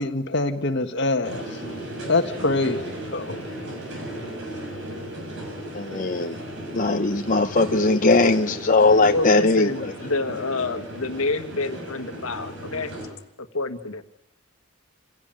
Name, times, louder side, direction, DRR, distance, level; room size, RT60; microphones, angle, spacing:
voice 1, 0.0-1.4 2.1-3.4, left 2 dB, 55° left, 6 dB, 1.6 m, -24 dB
sound 1, 1.2-13.1, right 1 dB, 60° right, 7.2 m, -35 dB
voice 2, 5.7-6.4 6.7-9.7, left 3 dB, 40° left, 5 dB, 0.8 m, -19 dB
voice 3, 9.1-13.0 13.4-14.0, left 2 dB, 85° left, 8 dB, 1.5 m, -28 dB
26.5 x 16.5 x 9.0 m, 0.84 s
head